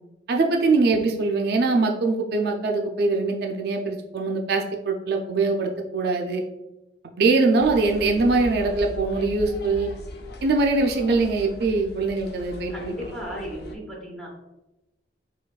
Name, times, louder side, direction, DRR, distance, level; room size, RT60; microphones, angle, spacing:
voice 1, 0.3-6.4 7.0-9.9 10.4-12.9, right 3 dB, 60° right, 2 dB, 0.3 m, -22 dB
sound 1, 7.6-13.7, left 1 dB, 60° left, 0.4 m, -39 dB
voice 2, 12.7-14.3, equal, 5° left, -4 dB, 0.8 m, -35 dB
4.9 x 2.3 x 2.3 m, 0.97 s
head